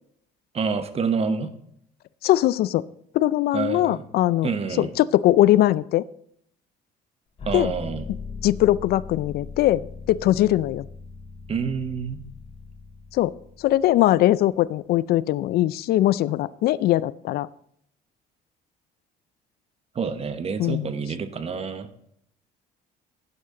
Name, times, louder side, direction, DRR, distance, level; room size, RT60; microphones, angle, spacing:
voice 1, 0.5-1.5 3.5-4.0 4.4-4.9 7.5-8.1 11.5-12.2 19.9-22.1, right 5 dB, 35° right, 10 dB, 1.0 m, -28 dB
voice 2, 2.2-2.9 3.1-4.5 4.8-6.0 7.5-7.7 8.4-10.9 13.1-17.5 20.6-20.9, left 14 dB, 65° left, 19 dB, 0.4 m, -21 dB
sound 1, 7.4-14.3, left 5 dB, 35° left, 5.5 m, -39 dB
11.5 x 9.7 x 3.7 m, 0.70 s
cardioid pair, 110°, 17 cm